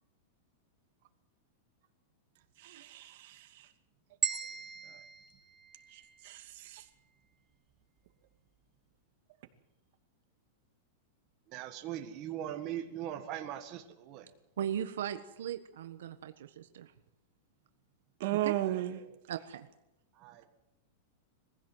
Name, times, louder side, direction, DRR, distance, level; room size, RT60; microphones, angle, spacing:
voice 1, 2.6-3.5 5.9-6.8 18.2-19.0, right 14 dB, 50° right, 6 dB, 2.5 m, -35 dB
sound 1, 4.2-6.4, right 6 dB, 15° right, 1.7 m, -38 dB
voice 2, 11.5-14.3 18.7-18.8 20.2-20.4, right 11 dB, 30° right, 4 dB, 1.7 m, -40 dB
voice 3, 14.6-16.9 18.4-18.5 19.3-19.7, right 9 dB, 80° right, 8 dB, 1.3 m, -38 dB
22.5 x 15.5 x 7.9 m, 0.93 s
supercardioid pair, 165°, 0 cm